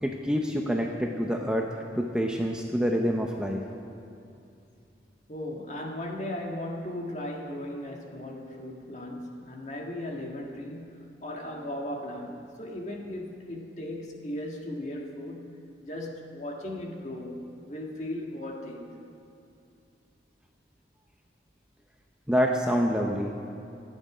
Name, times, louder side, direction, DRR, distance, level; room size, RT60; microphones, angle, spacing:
voice 1, 0.0-3.7 22.3-23.3, equal, 5° right, 1 dB, 0.7 m, -27 dB
voice 2, 5.3-19.0, left 1 dB, 40° left, 0 dB, 1.8 m, -37 dB
27.5 x 9.3 x 5.0 m, 2.6 s
head